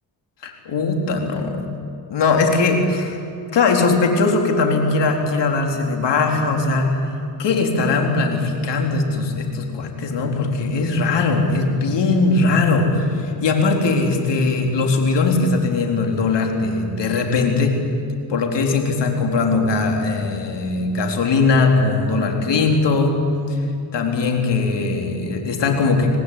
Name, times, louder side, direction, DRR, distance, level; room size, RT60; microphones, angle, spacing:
voice 1, 0.4-1.6 2.1-3.2 3.5-7.0 7.4-17.8 18.3-23.2 23.5-23.6 23.9-26.2, left 3 dB, 70° left, 3 dB, 4.2 m, -20 dB
25.5 x 18.5 x 9.9 m, 2.6 s
cardioid pair, 80°, 44 cm